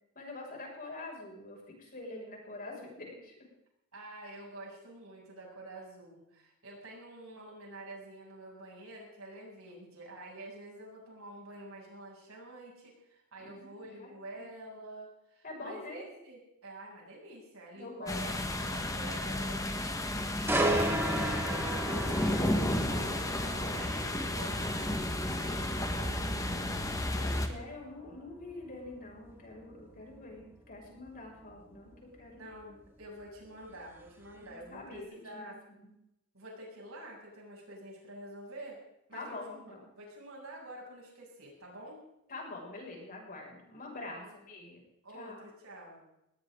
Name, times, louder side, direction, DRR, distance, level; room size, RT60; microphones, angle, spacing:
voice 1, 0.1-3.5 13.4-14.4 15.4-16.0 17.7-18.2 27.2-32.4 34.4-35.1 35.3-35.9 39.1-39.9 42.3-44.8 45.1-45.4, left 2 dB, 45° left, -1 dB, 6.5 m, -45 dB
voice 2, 3.9-18.3 18.6-19.6 20.1-26.9 32.3-35.6 36.3-38.8 39.1-42.0 44.2-44.3 45.0-46.0, right 1 dB, 75° right, -2 dB, 7.6 m, -48 dB
sound 1, 18.1-27.5, left 1 dB, 15° left, 1.6 m, -32 dB
sound 2, 20.5-34.3 34.7-35.0, right 1 dB, 10° right, 2.4 m, -37 dB
20.0 x 18.5 x 3.9 m, 0.83 s
head